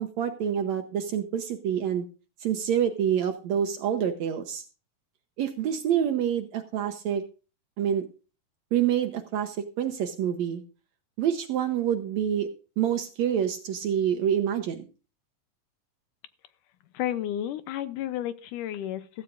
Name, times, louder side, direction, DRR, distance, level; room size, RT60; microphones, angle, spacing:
voice 1, 0.0-2.1 2.4-4.6 5.4-7.2 7.8-8.1 8.7-10.6 11.2-12.5 12.8-14.9, right 9 dB, 70° right, 6 dB, 1.9 m, -27 dB
voice 2, 16.9-19.2, left 11 dB, 75° left, 12 dB, 2.2 m, -32 dB
15.5 x 15.0 x 2.5 m, 0.34 s
omnidirectional pair, 4.0 m